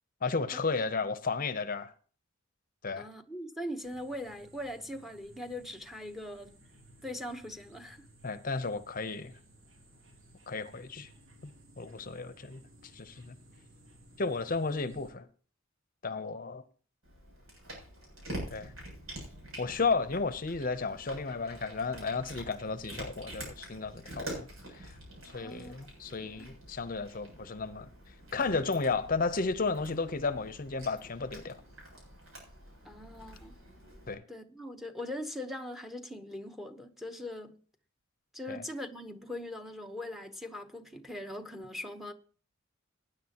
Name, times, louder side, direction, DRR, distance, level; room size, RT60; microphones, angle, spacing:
voice 1, 0.2-1.9 2.8-3.1 8.2-9.4 10.5-11.1 11.8-12.6 12.9-13.3 14.2-15.3 16.0-16.6 18.5-18.7 19.6-25.0 25.3-27.9 28.3-31.6 34.1-34.2 38.5-38.6, left 4 dB, 40° left, 0.7 m, -33 dB
voice 2, 3.0-6.5 7.0-8.0 25.4-25.7 26.2-26.5 32.8-33.6 34.3-37.6 38.3-42.1, left 1 dB, ahead, 0.9 m, -41 dB
sound 1, 3.8-15.1, right 1 dB, 70° right, 3.0 m, -58 dB
Cat, 17.0-34.1, right 1 dB, 90° right, 7.5 m, -46 dB
19.5 x 10.0 x 2.9 m
head